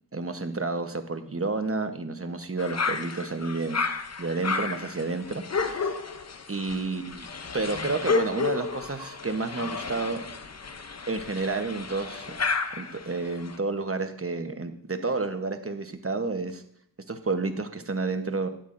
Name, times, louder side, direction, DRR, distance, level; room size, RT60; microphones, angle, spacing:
voice 1, 0.1-3.8 4.2-5.8 6.5-7.3 7.5-10.2 11.1-16.6 17.1-18.5, right 3 dB, 35° right, 7 dB, 1.1 m, -30 dB
sound 1, 2.6-13.6, left 4 dB, 45° left, 0.7 m, -32 dB
12.5 x 9.1 x 2.6 m, 0.68 s
wide cardioid pair, 50°, 37 cm